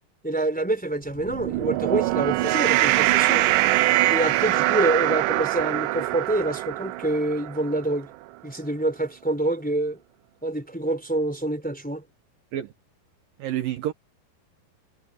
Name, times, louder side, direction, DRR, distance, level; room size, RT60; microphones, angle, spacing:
voice 1, 0.2-3.5 4.1-8.1 8.4-10.0 10.4-12.0, right 2 dB, ahead, 3.2 m, -26 dB
sound 1, 1.2-7.8, right 17 dB, 85° right, 1.8 m, -23 dB
voice 2, 13.4-13.9, right 12 dB, 70° right, 2.6 m, -28 dB
omnidirectional pair, 4.5 m